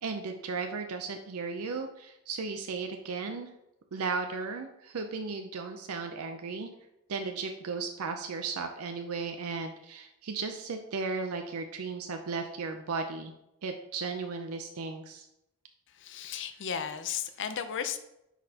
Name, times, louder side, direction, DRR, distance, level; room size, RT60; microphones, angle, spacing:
voice 1, 0.0-3.5 3.9-6.7 7.1-13.3 13.6-15.3, right 4 dB, 75° right, 5 dB, 0.5 m, -35 dB
voice 2, 15.9-18.0, left 7 dB, 55° left, 9 dB, 0.5 m, -35 dB
10.0 x 4.0 x 2.8 m, 0.84 s
head